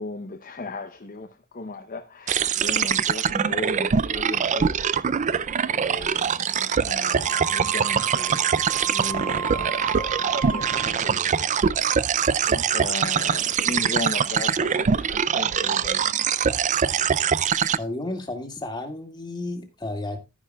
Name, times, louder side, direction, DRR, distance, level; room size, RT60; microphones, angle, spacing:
voice 1, 0.0-4.9 5.1-10.0 10.3-11.6 12.4-16.4, left 3 dB, 40° left, 0.7 m, -36 dB
sound 1, 2.3-17.8, right 7 dB, 35° right, 0.4 m, -23 dB
Wind instrument woodwind instrument, 7.3-11.0, right 6 dB, 60° right, 0.7 m, -33 dB
voice 2, 17.8-20.2, left 2 dB, 20° left, 2.0 m, -32 dB
12.5 x 10.0 x 2.3 m
head